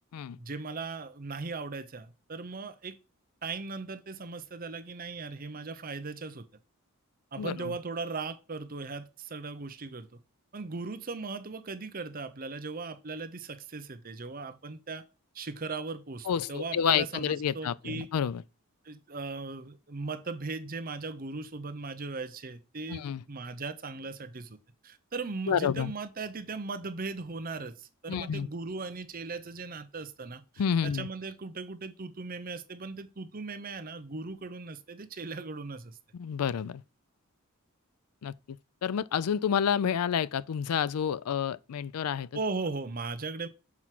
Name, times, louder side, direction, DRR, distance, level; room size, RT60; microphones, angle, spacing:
voice 1, 0.4-3.0 3.4-6.5 7.3-10.2 10.5-15.0 15.3-18.1 18.8-24.6 24.8-36.0 42.3-43.5, right 3 dB, 40° right, 0.7 m, -38 dB
voice 2, 16.3-18.4 22.9-23.2 25.5-25.9 28.1-28.5 30.6-31.1 36.1-36.8 38.2-38.3 38.8-42.3, left 8 dB, 90° left, 0.4 m, -29 dB
6.0 x 4.7 x 5.9 m
head